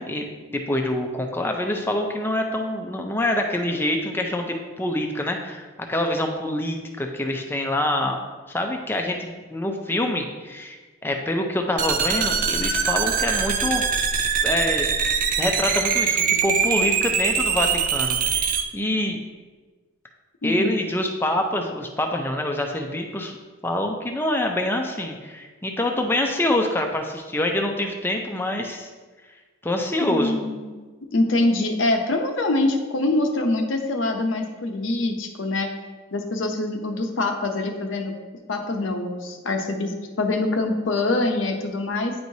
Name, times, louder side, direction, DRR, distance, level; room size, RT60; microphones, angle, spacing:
voice 1, 0.0-8.2 8.5-10.8 11.0-13.9 14.4-14.9 15.4-18.5 18.7-19.2 20.4-23.4 23.6-28.9 29.6-30.4, left 1 dB, 10° left, 3 dB, 0.5 m, -25 dB
sound 1, 11.8-18.6, right 6 dB, 40° right, 0.4 m, -23 dB
voice 2, 20.4-20.8 30.0-30.7 31.1-35.7 36.1-38.1 38.5-42.1, left 2 dB, 70° left, 4 dB, 0.7 m, -24 dB
9.3 x 4.6 x 2.7 m, 1.3 s
head